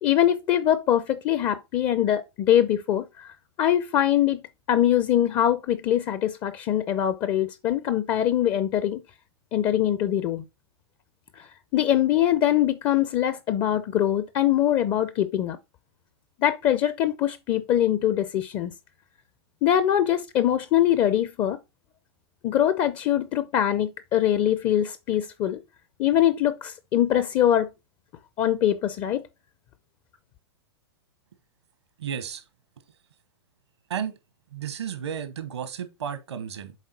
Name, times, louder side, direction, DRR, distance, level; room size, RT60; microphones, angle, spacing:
voice 1, 0.0-3.3 3.6-4.4 4.7-9.0 9.5-10.4 11.4-15.6 16.4-18.7 19.6-21.6 22.4-25.6 26.0-27.7 28.4-29.2, left 11 dB, 35° left, 0.5 m, -23 dB
voice 2, 32.0-32.4 33.9-34.1 34.5-36.7, right 8 dB, 80° right, 1.3 m, -33 dB
7.3 x 4.1 x 4.2 m
hypercardioid pair, 115°, 14 cm